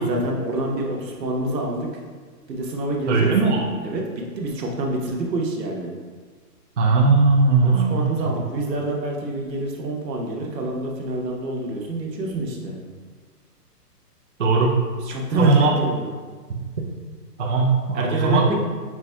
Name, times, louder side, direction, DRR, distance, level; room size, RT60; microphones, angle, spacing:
voice 1, 0.0-2.0 2.5-3.3 3.8-5.9 7.6-12.8 15.0-16.1 17.9-18.6, right 2 dB, 85° right, -1 dB, 1.1 m, -26 dB
voice 2, 3.1-3.6 6.8-8.3 14.4-14.8 15.4-15.9 17.4-18.5, right 4 dB, 50° right, -3 dB, 0.5 m, -19 dB
6.0 x 3.5 x 2.2 m, 1.5 s
hypercardioid pair, 175°, 49 cm